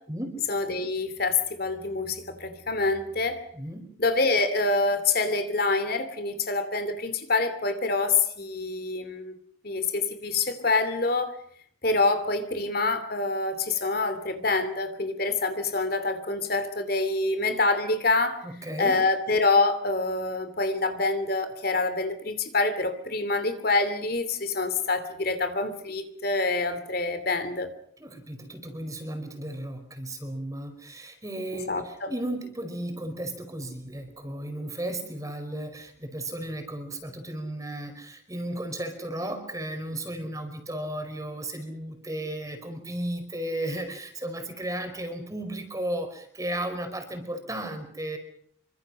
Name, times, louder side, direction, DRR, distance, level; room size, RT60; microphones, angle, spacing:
voice 1, 0.5-3.4 4.0-9.3 9.6-11.4 11.8-18.4 18.8-27.7 31.7-32.1, left 3 dB, 50° left, 9 dB, 2.8 m, -26 dB
voice 2, 3.5-3.9 18.4-18.9 28.0-48.2, right 1 dB, 15° right, 6 dB, 5.0 m, -34 dB
27.0 x 25.0 x 6.4 m, 0.63 s
head